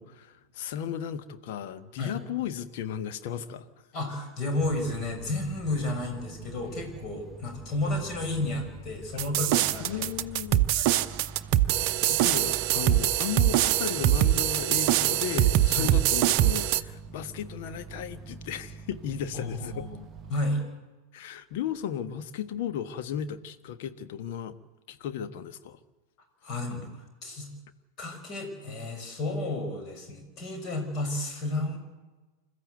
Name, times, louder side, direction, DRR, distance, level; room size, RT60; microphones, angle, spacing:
voice 1, 0.0-3.7 9.8-10.7 11.7-11.8 12.1-19.9 21.1-24.5 24.9-25.8, left 9 dB, 50° left, 1.3 m, -35 dB
voice 2, 3.9-10.1 10.5-11.2 15.7-15.9 19.3-20.0 20.3-20.6 26.4-27.5 28.0-31.8, left 2 dB, 35° left, 6.0 m, -32 dB
sound 1, 4.6-20.3, right 3 dB, 20° right, 1.1 m, -45 dB
sound 2, 9.2-16.8, right 13 dB, 45° right, 0.7 m, -23 dB
27.0 x 14.0 x 8.1 m
figure-of-eight pair, 90°, 0 cm